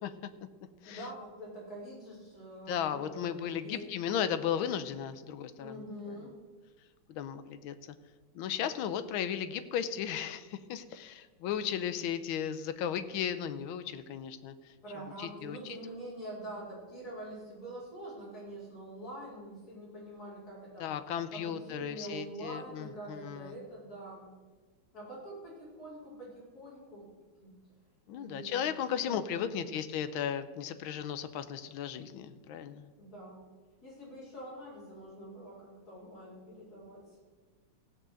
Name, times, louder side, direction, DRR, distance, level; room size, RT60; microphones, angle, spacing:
voice 1, 0.9-3.9 5.6-6.3 14.8-20.9 21.3-24.3 24.9-27.1 27.4-27.6 28.1-29.8 33.0-33.4 33.8-37.2, right 1 dB, 45° left, -7 dB, 5.2 m, -45 dB
voice 2, 2.7-5.8 6.1-6.2 7.1-7.7 8.3-14.5 15.2-15.8 20.8-23.5 28.1-32.9, left 9 dB, 75° left, 11 dB, 1.5 m, -35 dB
16.0 x 6.3 x 7.8 m, 1.3 s
omnidirectional pair, 2.3 m